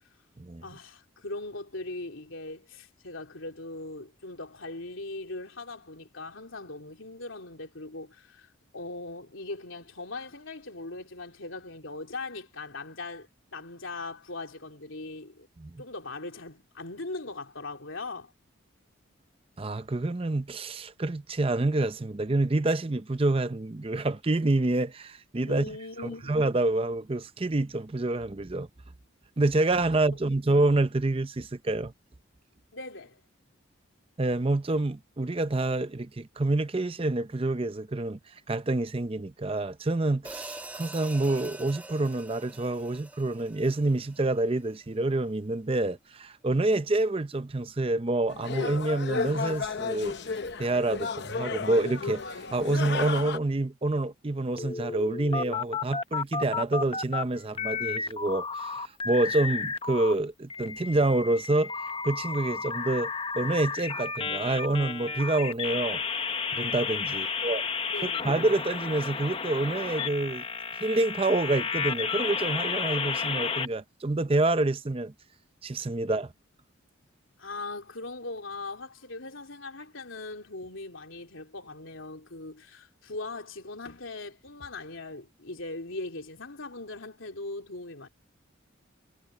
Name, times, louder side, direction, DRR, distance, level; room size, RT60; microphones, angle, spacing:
voice 1, 0.6-15.5 15.8-18.3 25.5-26.4 32.7-33.2 67.1-67.6 67.9-68.3 77.4-88.1, left 2 dB, 70° left, 3.3 m, -40 dB
voice 2, 19.6-25.7 26.3-28.7 29.4-31.9 34.2-38.2 38.5-50.1 50.6-61.7 62.0-66.0 66.5-67.6 68.0-70.4 70.8-75.1 75.6-76.3, right 2 dB, 25° right, 0.6 m, -27 dB
Hi-hat, 40.2-44.5, right 2 dB, 10° right, 1.3 m, -44 dB
sound 1, 48.3-53.4, left 4 dB, 55° left, 0.9 m, -33 dB
sound 2, 54.6-57.2 57.5-60.1 60.5-73.7, left 5 dB, 25° left, 0.9 m, -32 dB
head